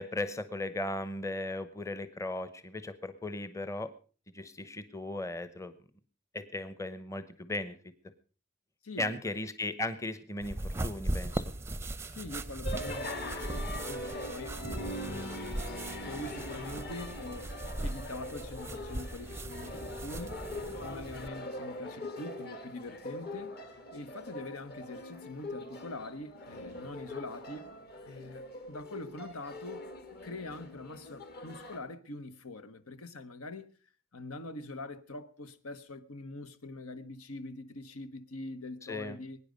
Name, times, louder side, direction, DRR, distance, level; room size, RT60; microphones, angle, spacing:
voice 1, 0.0-3.9 4.3-5.7 6.3-7.8 9.0-11.4 38.9-39.2, left 2 dB, 15° left, 0.9 m, -37 dB
voice 2, 8.8-9.3 12.0-15.6 16.0-17.6 17.8-20.5 20.8-23.6 23.9-27.7 28.0-29.9 30.2-33.8 34.1-39.4, left 2 dB, 75° left, 1.2 m, -44 dB
sound 1, 10.4-21.3, right 1 dB, 10° right, 0.6 m, -39 dB
sound 2, 12.6-31.8, left 1 dB, 45° left, 2.1 m, -42 dB
22.0 x 9.9 x 5.2 m
head